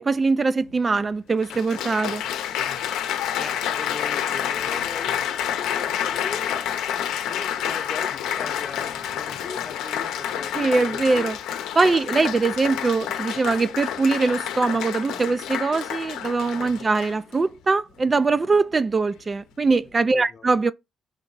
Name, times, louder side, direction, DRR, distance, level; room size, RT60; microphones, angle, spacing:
voice 1, 0.0-2.2 10.5-11.4 11.8-20.7, right 3 dB, 30° right, 0.3 m, -22 dB
Applause, 0.7-0.8 1.4-17.3 18.1-18.4, left 10 dB, 90° left, 0.7 m, -29 dB
voice 2, 3.4-6.5 7.3-11.3 16.5-16.7 20.1-20.5, left 4 dB, 40° left, 0.8 m, -39 dB
4.5 x 2.8 x 3.9 m
cardioid pair, 90°, 0 cm